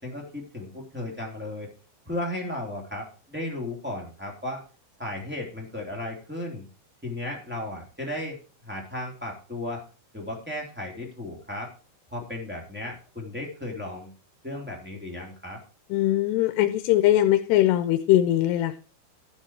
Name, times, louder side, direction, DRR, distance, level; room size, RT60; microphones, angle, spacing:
voice 1, 0.0-1.7 2.0-4.6 5.0-6.7 7.0-9.8 10.1-11.7 12.1-14.1 14.4-15.6, left 1 dB, 5° right, -2 dB, 1.7 m, -35 dB
voice 2, 15.9-18.8, left 13 dB, 80° left, 9 dB, 2.7 m, -21 dB
11.5 x 7.2 x 4.6 m, 0.35 s
omnidirectional pair, 4.9 m